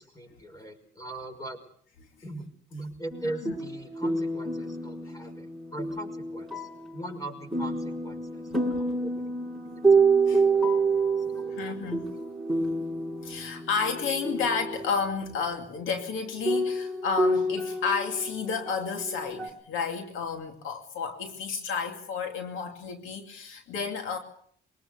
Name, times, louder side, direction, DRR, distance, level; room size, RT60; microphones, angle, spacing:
voice 1, 0.0-1.6 2.2-8.5 8.8-9.3 9.6-10.3 11.2-12.2, right 1 dB, 20° left, 6 dB, 5.6 m, -41 dB
sound 1, 3.1-15.1 16.0-16.1 16.4-19.5, right 3 dB, ahead, 6.2 m, -28 dB
voice 2, 11.5-12.0 13.2-24.2, left 5 dB, 85° left, 4 dB, 2.5 m, -31 dB
23.5 x 20.0 x 6.7 m, 0.63 s
cardioid pair, 90°, 20 cm